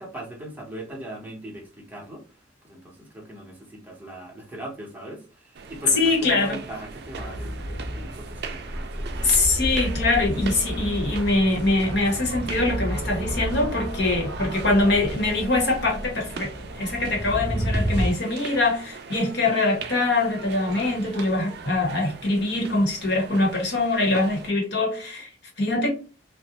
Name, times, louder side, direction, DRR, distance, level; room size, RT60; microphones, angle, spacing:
voice 1, 0.0-9.5 20.7-21.2, right 1 dB, 10° right, 0.8 m, -40 dB
sound 1, 5.6-24.5, right 5 dB, 60° right, 0.4 m, -40 dB
voice 2, 5.9-6.6 9.2-25.3 25.6-25.9, left 2 dB, 60° left, 1.0 m, -23 dB
sound 2, 7.0-18.1, equal, 85° left, 0.9 m, -31 dB
2.5 x 2.1 x 2.8 m
head